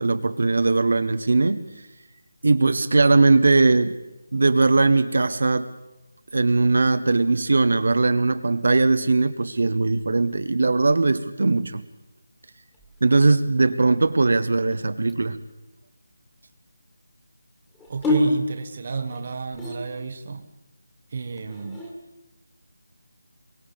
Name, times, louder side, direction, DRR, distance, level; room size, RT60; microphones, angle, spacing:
voice 1, 0.0-1.6 2.4-4.0 4.3-5.7 6.3-11.8 13.0-15.4, right 3 dB, 60° right, 10 dB, 1.0 m, -20 dB
sound 1, 12.7-13.5 14.4-15.5 17.7-20.2 21.3-21.9, left 2 dB, 5° left, 2.0 m, -28 dB
voice 2, 17.9-20.5 21.1-21.8, right 5 dB, 30° right, 7 dB, 1.2 m, -31 dB
23.0 x 23.0 x 5.3 m, 0.99 s
figure-of-eight pair, 175°, 0 cm